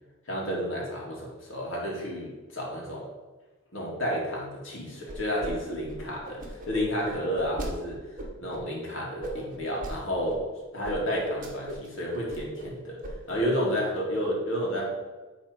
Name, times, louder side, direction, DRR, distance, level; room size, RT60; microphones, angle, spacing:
voice 1, 0.3-3.1 3.7-8.0 8.4-10.5 10.7-13.0 13.3-14.9, equal, 65° left, -3 dB, 2.4 m, -31 dB
sound 1, 5.1-5.5 5.8-7.7 8.2-8.6 9.2-9.9 10.3-10.4 10.8-10.9 11.3-11.9 12.1-12.7 13.0-13.4, right 1 dB, 40° right, 1.5 m, -38 dB
9.3 x 4.0 x 5.1 m, 1.2 s
head